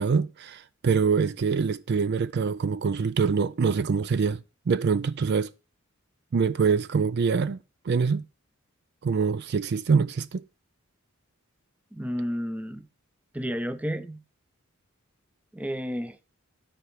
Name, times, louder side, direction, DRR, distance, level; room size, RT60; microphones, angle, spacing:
voice 1, 0.0-4.4 4.7-5.5 6.3-7.6 7.9-8.2 9.0-10.4, right 5 dB, 55° right, 0.4 m, -24 dB
voice 2, 11.9-12.9 13.3-14.2 15.5-16.2, equal, 5° right, 0.6 m, -31 dB
13.0 x 4.7 x 5.6 m
head